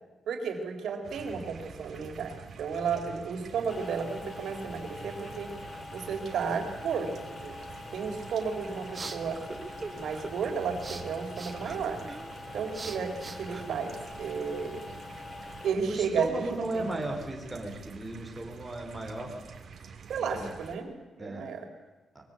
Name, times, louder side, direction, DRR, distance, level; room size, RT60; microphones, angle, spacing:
voice 1, 0.3-5.5 5.9-7.6 7.9-9.4 9.9-12.0 12.5-14.9 15.6-16.8 20.1-21.7, right 6 dB, 75° right, 5 dB, 3.9 m, -33 dB
sound 1, 1.0-20.8, right 6 dB, 50° right, 3.1 m, -48 dB
sound 2, 3.7-15.7, left 3 dB, 30° left, 1.4 m, -44 dB
sound 3, 8.4-14.3, right 3 dB, 25° right, 1.6 m, -44 dB
voice 2, 15.9-19.3 20.3-20.5 21.2-21.5, right 1 dB, 5° right, 0 dB, 4.6 m, -35 dB
23.5 x 22.0 x 8.3 m, 1.2 s
wide cardioid pair, 155°, 0 cm